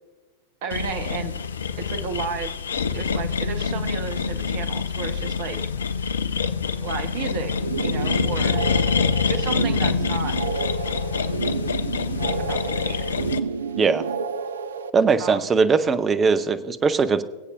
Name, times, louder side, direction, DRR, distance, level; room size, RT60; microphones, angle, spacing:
voice 1, 0.6-1.4 1.8-2.5 2.9-5.6 6.8-7.5 7.8-8.7 9.3-10.4 12.4-13.1 15.2-15.5, right 6 dB, 50° right, 9 dB, 1.2 m, -32 dB
sound 1, 0.7-13.4, left 6 dB, 70° left, 0.5 m, -26 dB
sound 2, 7.5-14.9, right 5 dB, 65° right, 0.5 m, -29 dB
voice 2, 14.9-17.2, right 5 dB, 20° right, 12 dB, 0.7 m, -20 dB
23.0 x 8.2 x 2.5 m, 1.3 s
figure-of-eight pair, 90°, 0 cm